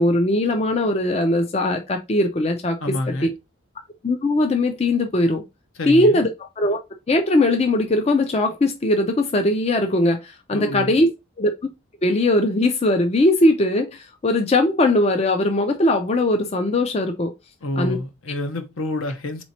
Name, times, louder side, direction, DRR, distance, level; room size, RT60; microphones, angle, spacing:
voice 1, 0.0-2.8 3.2-3.3 4.0-5.4 5.9-6.3 6.6-6.8 7.1-11.1 11.4-11.5 12.0-17.3 17.8-18.0, left 1 dB, 30° left, 0.4 m, -20 dB
voice 2, 2.8-3.3 5.7-6.2 10.5-11.0 17.6-19.4, left 1 dB, 70° left, 0.8 m, -28 dB
4.0 x 3.0 x 4.1 m
head